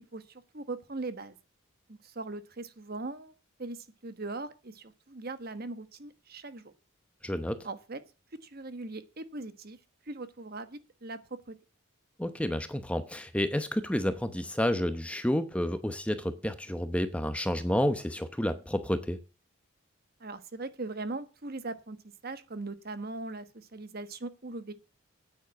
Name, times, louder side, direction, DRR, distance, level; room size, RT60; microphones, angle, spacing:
voice 1, 0.0-1.4 1.9-3.3 3.6-6.7 7.6-8.0 8.4-9.8 10.1-11.2 11.5-11.6 20.2-22.0 22.2-24.7, right 2 dB, 45° right, 1.2 m, -40 dB
voice 2, 7.2-7.7 12.2-19.2, left 1 dB, 5° left, 0.8 m, -30 dB
9.3 x 8.9 x 7.2 m
head